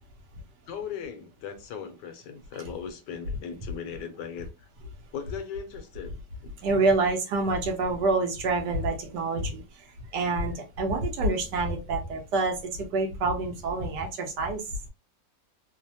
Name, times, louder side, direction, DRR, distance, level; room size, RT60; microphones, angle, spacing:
voice 1, 0.7-4.7 5.1-6.2 6.4-6.5, left 7 dB, 75° left, 7 dB, 1.1 m, -38 dB
voice 2, 6.6-9.9 10.1-14.6, right 3 dB, 70° right, 4 dB, 1.1 m, -27 dB
3.2 x 2.1 x 2.7 m, 0.28 s
omnidirectional pair, 2.0 m